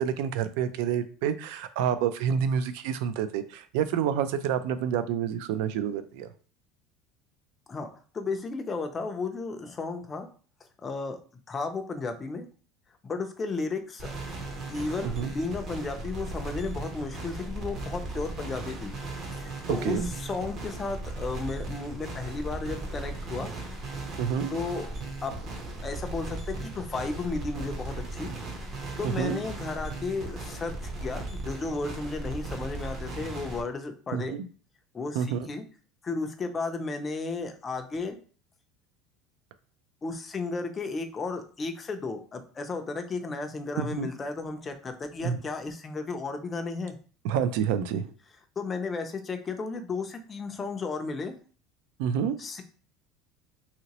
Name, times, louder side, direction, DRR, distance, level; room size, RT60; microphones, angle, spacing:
voice 1, 0.0-6.3 15.0-15.3 19.7-20.1 24.2-24.5 29.0-29.4 34.1-34.5 35.1-35.5 43.8-44.1 45.2-45.4 47.2-48.0 52.0-52.4, right 8 dB, 75° right, 12 dB, 0.3 m, -28 dB
voice 2, 8.1-10.3 10.8-11.2 11.5-12.5 13.0-14.1 14.7-18.9 19.3-23.5 24.5-24.9 25.2-25.3 25.8-28.3 29.0-34.4 34.9-35.6 36.0-38.2 40.0-47.0 48.6-51.3 52.4-52.6, left 3 dB, 20° left, 5 dB, 0.4 m, -34 dB
sound 1, 14.0-33.6, right 2 dB, 40° right, 0.7 m, -37 dB
2.9 x 2.8 x 2.9 m, 0.41 s
cardioid pair, 160°, 0 cm